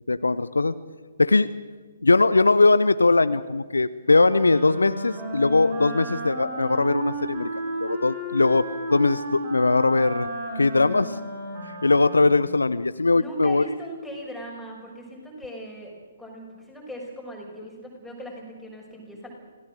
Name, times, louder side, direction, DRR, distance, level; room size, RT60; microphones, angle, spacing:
voice 1, 0.1-0.8 1.2-1.5 2.0-7.5 7.8-10.3 10.6-11.2 11.8-13.6, left 3 dB, 75° left, 14 dB, 0.8 m, -20 dB
Wind instrument woodwind instrument, 4.1-12.6, right 1 dB, 40° right, 5.6 m, -33 dB
voice 2, 13.1-15.9 16.2-19.3, equal, ahead, -4 dB, 6.3 m, -39 dB
26.5 x 17.5 x 6.6 m, 1.4 s
figure-of-eight pair, 130°, 0 cm